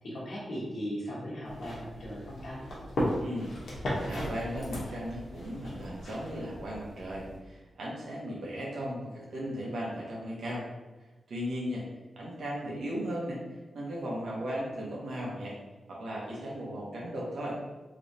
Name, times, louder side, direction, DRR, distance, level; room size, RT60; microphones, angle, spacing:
voice 1, 0.0-2.6, equal, 60° left, -6 dB, 1.3 m, -38 dB
sound 1, 1.4-7.4, equal, 80° left, 1.0 m, -36 dB
voice 2, 3.2-10.7 11.3-11.8 12.2-13.4 13.7-15.6 15.9-17.6, equal, 75° right, -5 dB, 1.1 m, -36 dB
3.2 x 3.1 x 2.7 m, 1.2 s
wide cardioid pair, 155°, 0 cm